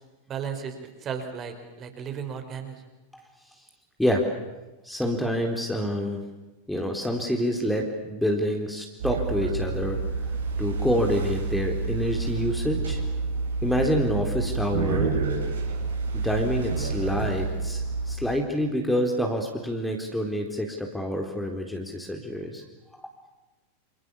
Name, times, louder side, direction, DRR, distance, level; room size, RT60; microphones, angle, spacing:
voice 1, 0.3-0.7 1.0-2.8, right 7 dB, 30° right, 6 dB, 5.0 m, -34 dB
voice 2, 4.8-6.2 6.7-10.0 10.6-13.0 13.6-15.2 16.1-22.6, equal, 5° left, 2 dB, 3.9 m, -27 dB
sound 1, 9.0-18.2, right 4 dB, 65° right, 7.2 m, -29 dB
29.0 x 28.5 x 7.2 m, 1.1 s
figure-of-eight pair, 90°, 0 cm